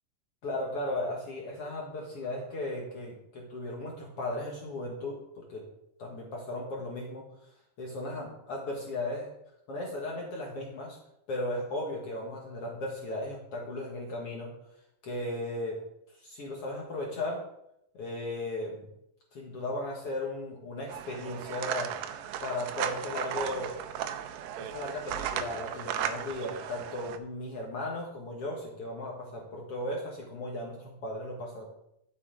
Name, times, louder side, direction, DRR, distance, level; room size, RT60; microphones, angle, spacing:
voice 1, 0.4-5.7 6.0-7.2 7.8-9.3 9.7-11.0 11.3-14.5 15.0-15.8 16.2-17.4 17.9-18.9 19.3-21.9 22.4-23.7 24.6-31.7, left 1 dB, 55° left, -1 dB, 1.7 m, -36 dB
sound 1, 20.9-27.2, right 10 dB, 80° right, 2.0 m, -36 dB
11.5 x 6.9 x 3.8 m, 0.78 s
omnidirectional pair, 4.4 m